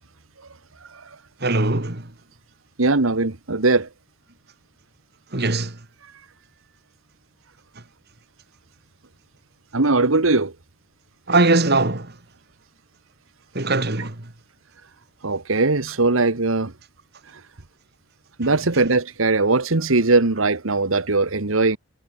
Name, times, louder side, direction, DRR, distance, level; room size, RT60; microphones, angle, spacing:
voice 1, 0.8-1.2 2.8-3.9 6.0-6.1 9.7-10.5 14.0-14.1 15.2-16.7 17.3-17.4 18.4-21.8, right 3 dB, 80° right, 1.5 m, -20 dB
voice 2, 1.4-2.0 5.3-5.7 11.3-12.1 13.5-14.1, right 2 dB, 50° right, 2.4 m, -20 dB
head